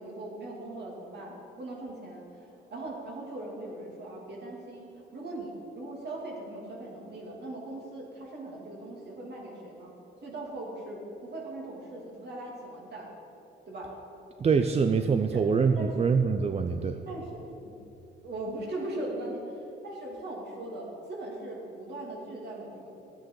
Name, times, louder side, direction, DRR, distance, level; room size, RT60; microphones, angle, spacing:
voice 1, 0.0-2.4 2.7-9.9 10.2-13.1 13.7-13.9 15.3-15.4 15.8-16.1 17.1-17.8 18.2-22.9, right 1 dB, 60° right, -2 dB, 2.9 m, -39 dB
voice 2, 14.4-17.0, right 5 dB, 30° right, 7 dB, 0.5 m, -25 dB
13.0 x 9.2 x 4.8 m, 2.8 s
cardioid pair, 90°, 20 cm